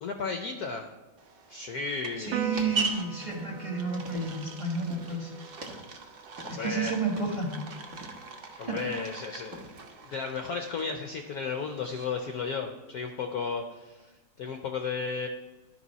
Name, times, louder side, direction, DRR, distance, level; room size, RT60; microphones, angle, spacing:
voice 1, 0.0-0.9 1.5-2.4 6.4-6.9 8.6-9.6 10.0-14.1 14.4-15.3, left 5 dB, 65° left, 5 dB, 1.0 m, -34 dB
sound 1, 1.2-12.4, right 4 dB, 60° right, 0.5 m, -41 dB
voice 2, 2.2-5.3 6.5-7.5 8.5-8.8, right 4 dB, 25° right, -1 dB, 1.6 m, -31 dB
sound 2, 2.3-4.5 4.8-5.2 5.5-6.8 7.1-7.5 7.9-9.2 9.5-9.9, right 1 dB, 45° right, 1.6 m, -46 dB
Piano, 2.3-9.0, right 7 dB, 90° right, 1.5 m, -43 dB
12.5 x 5.4 x 4.1 m, 1.2 s
omnidirectional pair, 2.2 m